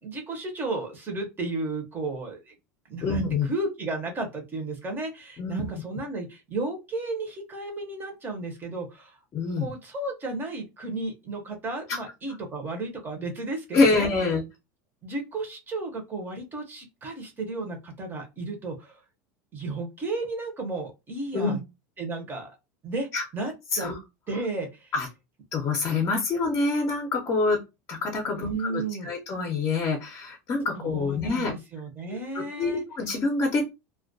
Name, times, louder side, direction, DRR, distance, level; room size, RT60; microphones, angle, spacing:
voice 1, 0.0-2.6 2.9-9.2 9.6-14.1 15.0-19.0 19.5-21.6 22.0-22.5 22.8-23.1 23.3-23.9 24.3-24.9 28.4-29.1 30.7-32.8, right 2 dB, 20° right, 2 dB, 0.7 m, -33 dB
voice 2, 3.0-3.5 5.4-5.7 9.3-9.7 11.9-12.0 13.7-14.4 21.3-21.6 23.1-23.2 23.7-24.0 24.9-25.1 25.5-27.6 27.9-31.5 32.1-33.7, left 3 dB, 30° left, 2 dB, 0.6 m, -26 dB
2.2 x 2.2 x 2.6 m, 0.25 s
supercardioid pair, 130°, 9 cm